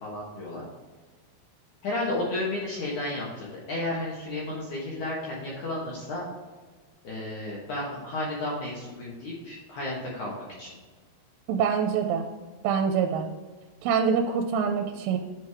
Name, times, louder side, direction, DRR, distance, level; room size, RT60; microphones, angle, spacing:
voice 1, 0.0-0.6 1.8-6.2 7.0-10.8, left 2 dB, 75° left, -5 dB, 1.7 m, -32 dB
voice 2, 11.5-12.3 12.6-13.3 13.8-15.2, right 6 dB, 90° right, 4 dB, 3.1 m, -25 dB
10.5 x 4.8 x 3.5 m, 1.4 s
omnidirectional pair, 5.6 m